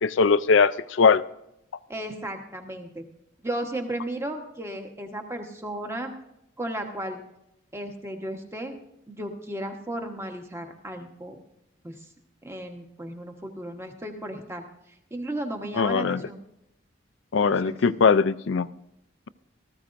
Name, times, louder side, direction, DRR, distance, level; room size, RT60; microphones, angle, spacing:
voice 1, 0.0-1.2 15.8-16.2 17.3-18.7, left 5 dB, 70° left, 15 dB, 0.4 m, -20 dB
voice 2, 1.9-3.0 3.4-6.1 6.6-7.2 7.7-8.7 9.1-11.4 11.8-12.0 12.4-14.6 15.1-16.4 17.4-17.8, right 1 dB, 15° right, 4 dB, 1.2 m, -34 dB
18.0 x 14.0 x 2.6 m, 0.82 s
head